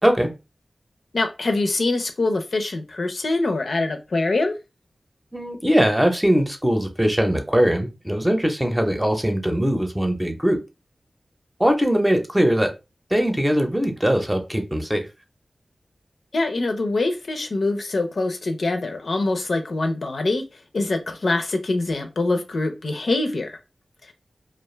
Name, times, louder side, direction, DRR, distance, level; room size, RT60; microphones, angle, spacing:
voice 1, 1.1-4.5 16.3-20.4 20.7-23.6, left 2 dB, 75° left, 0.5 m, -24 dB
voice 2, 5.3-10.6 11.6-12.7 13.1-15.1, equal, 10° right, 0.7 m, -21 dB
2.4 x 2.2 x 3.1 m
cardioid pair, 50°, 0 cm